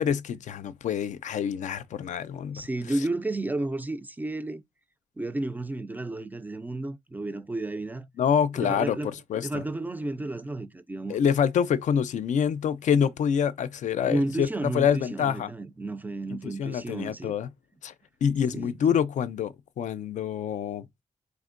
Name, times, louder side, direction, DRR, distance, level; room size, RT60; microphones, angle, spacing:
voice 1, 0.0-2.6 8.2-9.6 11.1-14.5 14.7-15.5 16.4-17.5 17.8-17.9 18.2-20.9, left 8 dB, 65° left, 0.4 m, -26 dB
voice 2, 2.5-4.6 5.2-8.1 8.6-9.1 9.4-11.2 14.1-17.4 18.5-18.8, right 2 dB, 15° right, 0.3 m, -32 dB
4.3 x 3.4 x 2.4 m
wide cardioid pair, 170°, 13 cm